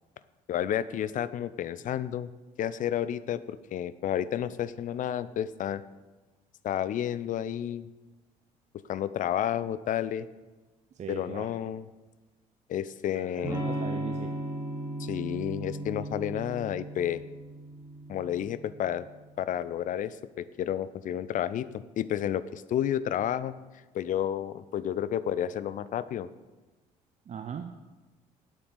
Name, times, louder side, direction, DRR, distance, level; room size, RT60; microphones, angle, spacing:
voice 1, 0.5-2.3 2.6-5.8 6.6-7.9 8.9-10.3 11.1-11.9 12.7-13.6 15.0-17.2 18.1-19.1 19.4-21.7 22.0-23.5 23.9-26.3, left 10 dB, 40° left, 16 dB, 0.6 m, -31 dB
voice 2, 10.9-11.5 13.1-14.3 27.3-27.7, right 7 dB, 35° right, 7 dB, 0.7 m, -40 dB
Electric guitar / Strum, 13.4-19.1, right 1 dB, 15° right, 2.9 m, -36 dB
8.9 x 7.9 x 6.8 m, 1.2 s
figure-of-eight pair, 50°, 21 cm